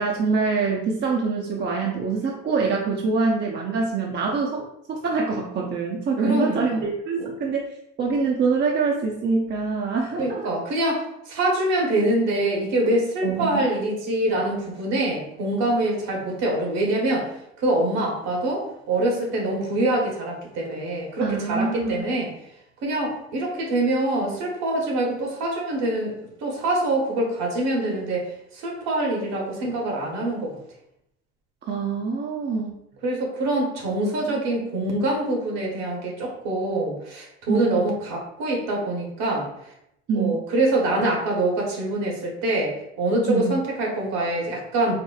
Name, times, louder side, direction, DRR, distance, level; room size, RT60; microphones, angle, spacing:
voice 1, 0.0-7.7 8.0-10.4 13.2-13.6 21.2-22.0 31.7-32.7 37.5-37.8 40.1-40.4 43.3-43.5, right 4 dB, 35° right, -1 dB, 0.5 m, -25 dB
voice 2, 6.2-6.8 7.2-7.3 10.2-17.3 17.6-22.3 22.8-26.1 26.4-30.5 33.0-39.5 40.1-44.9, right 1 dB, 65° right, -1 dB, 1.1 m, -25 dB
4.2 x 2.0 x 2.3 m, 0.78 s
supercardioid pair, 80°, 30 cm